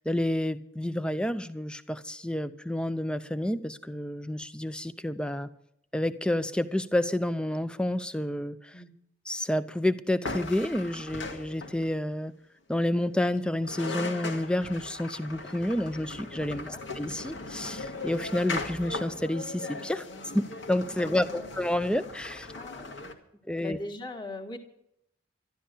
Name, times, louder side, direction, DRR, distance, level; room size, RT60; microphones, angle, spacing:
voice 1, 0.0-5.5 5.9-8.7 9.3-12.3 12.7-16.7 17.0-20.1 20.3-22.5 23.5-23.8, left 1 dB, 5° left, 0.6 m, -29 dB
sound 1, 10.2-12.0 13.4-13.5 13.6-23.1, left 3 dB, 80° left, 2.2 m, -38 dB
voice 2, 16.4-16.8 21.0-21.5 22.5-23.2 23.6-24.6, left 2 dB, 25° left, 2.0 m, -41 dB
12.5 x 12.5 x 6.9 m
head